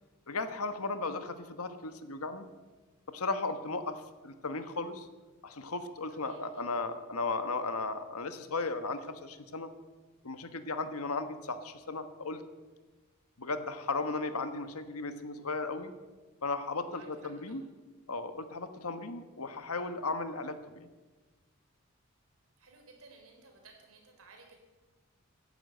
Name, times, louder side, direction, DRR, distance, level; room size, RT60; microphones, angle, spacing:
voice 1, 0.3-2.5 3.1-5.1 5.4-9.7 10.2-12.4 13.4-15.9 16.4-17.6 18.1-20.9, left 3 dB, 80° left, 10 dB, 1.2 m, -36 dB
voice 2, 6.1-6.6 16.9-17.1 17.5-17.6 22.6-24.6, right 3 dB, 70° right, 2 dB, 3.9 m, -57 dB
14.5 x 10.5 x 7.9 m, 1.3 s
head